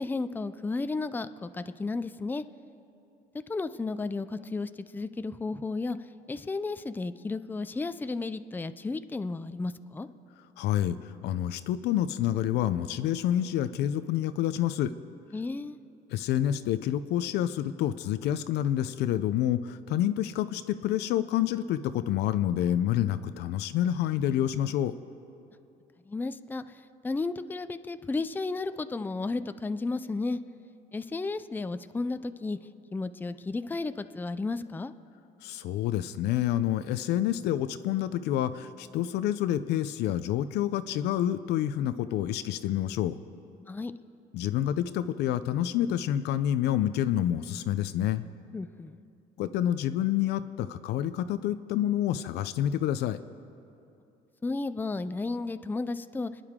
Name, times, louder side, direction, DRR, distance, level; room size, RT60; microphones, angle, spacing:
voice 1, 0.0-2.4 3.5-6.0 6.3-10.1 15.3-15.8 26.1-26.6 27.0-30.4 30.9-32.6 32.9-34.9 43.7-43.9 48.5-49.0 54.4-56.3, left 3 dB, 10° left, 11 dB, 0.4 m, -33 dB
voice 2, 10.6-14.9 16.1-24.9 35.4-43.1 44.3-48.2 49.4-53.2, left 11 dB, 80° left, 12 dB, 0.6 m, -28 dB
29.5 x 10.0 x 3.7 m, 2.7 s
cardioid pair, 110°, 17 cm